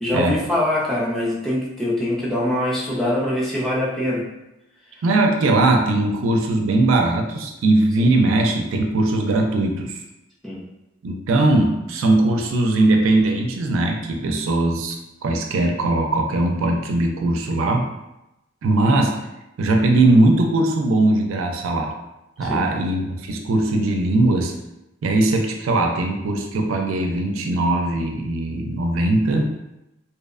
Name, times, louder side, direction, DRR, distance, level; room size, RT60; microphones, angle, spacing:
voice 1, 0.0-4.3 8.0-8.2 10.4-10.6 22.4-22.7, left 1 dB, ahead, -6 dB, 0.4 m, -23 dB
voice 2, 5.0-10.0 11.0-15.0 15.2-17.9 18.6-19.2 19.6-21.9 22.4-24.5 25.0-29.5, right 2 dB, 70° right, 2 dB, 0.4 m, -20 dB
2.8 x 2.0 x 2.4 m, 0.92 s
head